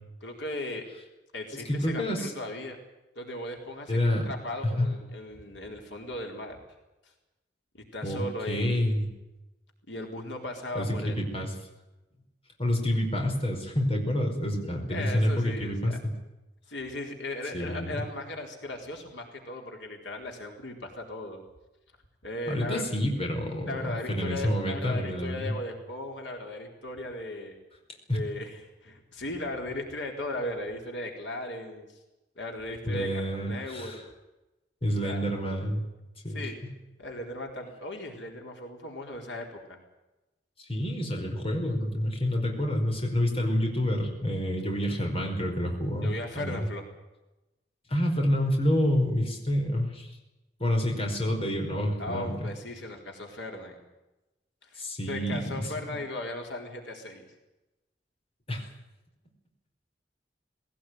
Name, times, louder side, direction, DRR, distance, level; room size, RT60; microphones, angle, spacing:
voice 1, 0.2-0.9 1.3-2.8 3.2-4.0 4.3-6.6 7.7-8.7 9.9-11.1 14.9-16.0 16.7-21.4 22.2-22.8 23.7-27.6 28.1-31.9 32.4-33.1 33.4-34.0 35.0-35.2 36.3-36.5 37.0-39.8 46.0-46.8 52.0-53.8 54.6-57.3, left 1 dB, 90° left, 2 dB, 4.3 m, -37 dB
voice 2, 1.5-2.3 3.9-4.3 4.8-4.9 8.0-9.1 10.7-11.5 12.6-15.9 17.5-18.0 22.5-25.5 28.1-28.2 32.9-34.0 34.8-35.8 36.2-36.5 40.7-46.1 46.3-46.6 47.9-50.1 50.6-52.4 54.8-55.7 58.5-58.7, equal, 35° left, 2 dB, 5.0 m, -28 dB
19.5 x 18.0 x 9.4 m, 1.0 s
head